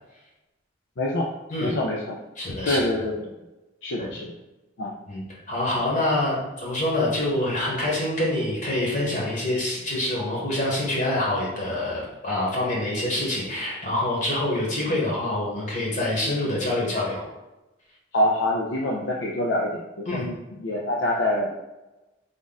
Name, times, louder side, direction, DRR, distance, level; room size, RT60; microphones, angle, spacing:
voice 1, 1.0-1.3 1.6-2.2 2.7-3.3 3.8-4.4 4.8-4.9 18.1-20.3 20.6-21.5, left 1 dB, 70° left, -2 dB, 0.5 m, -25 dB
voice 2, 2.4-2.8 4.0-4.1 5.1-17.2 20.1-20.2, left 1 dB, 40° left, -4 dB, 1.1 m, -26 dB
3.6 x 2.5 x 4.0 m, 1.0 s
head